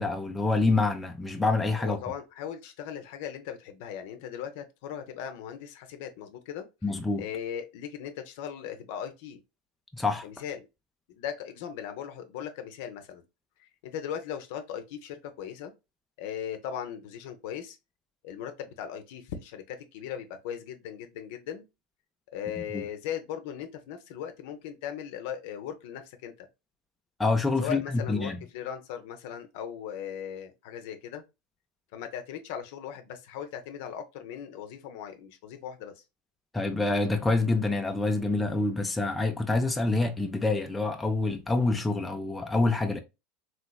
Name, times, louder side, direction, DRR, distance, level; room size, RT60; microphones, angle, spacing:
voice 1, 0.0-2.0 6.8-7.2 9.9-10.3 22.7-22.8 27.2-28.4 36.5-43.0, left 3 dB, 10° left, 0.4 m, -26 dB
voice 2, 1.8-6.7 7.2-9.4 10.2-10.7 11.1-13.2 13.6-15.7 16.2-17.8 18.2-21.6 22.3-26.5 27.6-31.2 31.9-36.0, left 9 dB, 65° left, 0.6 m, -38 dB
3.1 x 3.0 x 2.3 m
supercardioid pair, 120°, 0 cm